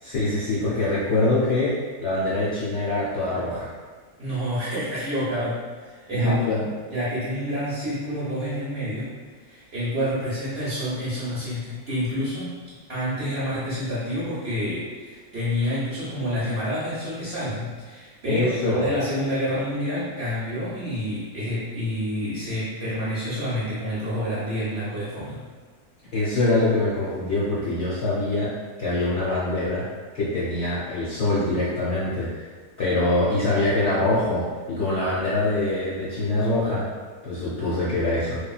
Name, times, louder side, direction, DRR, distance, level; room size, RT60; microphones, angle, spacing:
voice 1, 0.0-3.7 6.1-6.7 18.2-18.9 26.1-28.5 28.8-29.8 30.1-32.3 32.8-36.9 37.2-38.4, left 2 dB, 65° left, -9 dB, 0.7 m, -24 dB
voice 2, 4.2-6.5 6.9-9.2 9.4-12.6 12.9-25.4, equal, 55° right, -10 dB, 0.7 m, -28 dB
3.1 x 2.3 x 2.3 m, 1.5 s
omnidirectional pair, 1.7 m